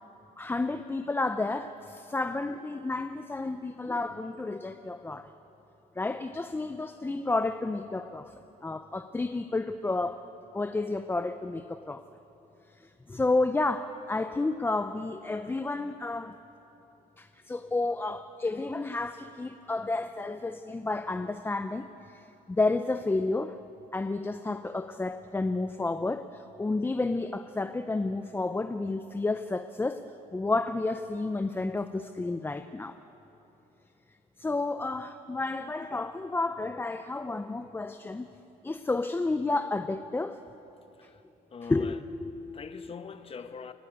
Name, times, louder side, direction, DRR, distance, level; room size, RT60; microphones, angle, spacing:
voice 1, 0.4-5.3 6.0-8.4 8.6-10.2 10.5-12.0 12.7-16.4 17.2-23.6 23.9-30.0 30.3-33.0 34.4-38.3 38.6-40.4 41.7-42.9, left 3 dB, 15° left, 9 dB, 0.6 m, -31 dB
voice 2, 41.5-42.0 42.5-43.7, left 5 dB, 35° left, 10 dB, 1.1 m, -43 dB
28.5 x 12.0 x 8.7 m, 2.9 s
cardioid pair, 110°, 17 cm